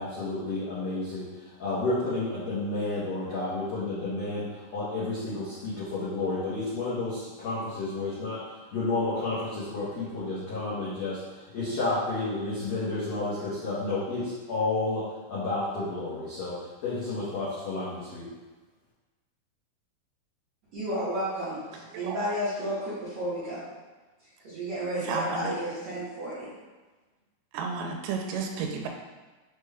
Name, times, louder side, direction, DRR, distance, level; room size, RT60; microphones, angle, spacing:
voice 1, 0.0-8.4 8.7-15.0 15.3-16.5 16.8-18.3, left 2 dB, 85° left, -11 dB, 1.4 m, -31 dB
voice 2, 20.7-23.6 24.4-26.5, equal, 70° right, -12 dB, 1.6 m, -32 dB
voice 3, 25.1-25.5 27.5-28.9, right 5 dB, 85° right, 2 dB, 2.4 m, -32 dB
5.8 x 2.2 x 3.3 m, 1.3 s
omnidirectional pair, 4.5 m